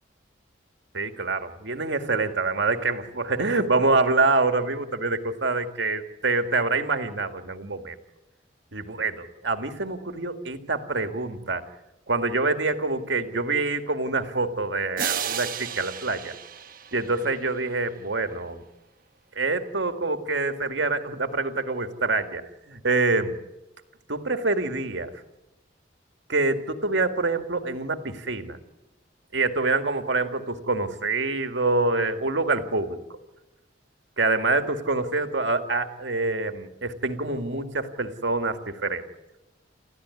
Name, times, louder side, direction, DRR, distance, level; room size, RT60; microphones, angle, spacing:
voice 1, 0.9-8.0 8.7-11.6 12.1-16.3 16.9-18.6 19.4-23.3 24.1-25.1 26.3-28.6 29.3-33.0 34.2-39.0, right 3 dB, 80° right, 7 dB, 2.0 m, -26 dB
sound 1, 15.0-17.8, right 8 dB, 50° right, 1.2 m, -33 dB
29.0 x 14.5 x 9.7 m, 1.0 s
head